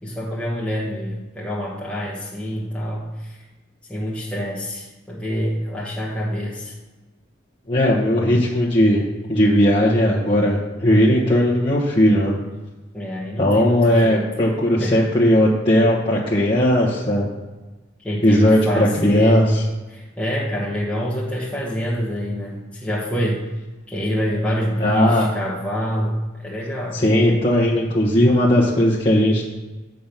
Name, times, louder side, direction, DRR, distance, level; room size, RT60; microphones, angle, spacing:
voice 1, 0.0-3.4 3.9-6.8 12.9-14.3 14.8-15.1 18.0-19.5 19.9-23.4 23.9-27.0, equal, 5° left, -6 dB, 1.2 m, -26 dB
voice 2, 7.7-9.0 9.3-12.3 13.4-17.3 18.2-19.4 24.8-25.3 26.9-29.5, equal, 30° left, -6 dB, 1.2 m, -17 dB
7.7 x 5.2 x 5.8 m, 1.2 s
head